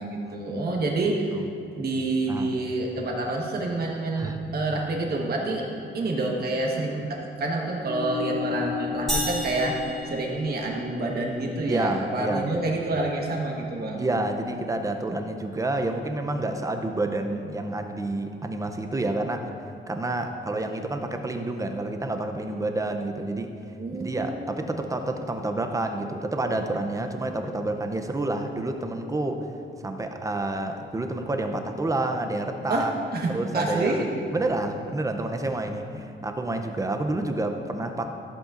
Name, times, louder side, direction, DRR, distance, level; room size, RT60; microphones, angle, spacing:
voice 1, 0.0-1.4 1.8-5.7 5.9-14.1 23.8-24.5 32.7-34.1, right 2 dB, 50° right, 0 dB, 1.3 m, -28 dB
sound 1, 7.8-12.6, left 5 dB, 40° left, 1.6 m, -35 dB
sound 2, 9.1-11.0, equal, ahead, 2.0 m, -32 dB
voice 2, 11.7-12.5 14.0-19.5 19.9-23.5 23.9-29.5 29.8-32.9 33.3-34.1 34.3-38.1, right 2 dB, 15° right, 5 dB, 0.5 m, -29 dB
14.5 x 7.9 x 2.5 m, 2.6 s
wide cardioid pair, 160°, 21 cm